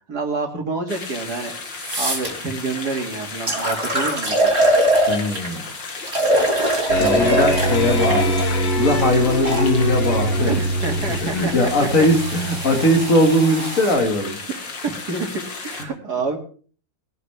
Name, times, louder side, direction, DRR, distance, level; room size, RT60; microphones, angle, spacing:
voice 1, 0.1-4.6 10.5-12.1 14.8-15.3 15.6-16.4, right 3 dB, 60° right, 3 dB, 2.9 m, -28 dB
sound 1, 0.9-15.8, left 4 dB, 85° left, 2.8 m, -34 dB
sound 2, 1.3-1.4 1.8-2.3 3.0-3.1 3.5-5.5 6.1-9.7 10.5-13.9, right 1 dB, 35° right, 4.0 m, -23 dB
voice 2, 5.1-5.7 7.0-8.4 8.8-10.6 11.2-14.4 15.8-15.9, left 1 dB, 45° left, 4 dB, 2.4 m, -20 dB
sound 3, 6.9-13.1, equal, 70° left, 2.7 m, -23 dB
20.0 x 11.0 x 3.5 m, 0.42 s
omnidirectional pair, 1.9 m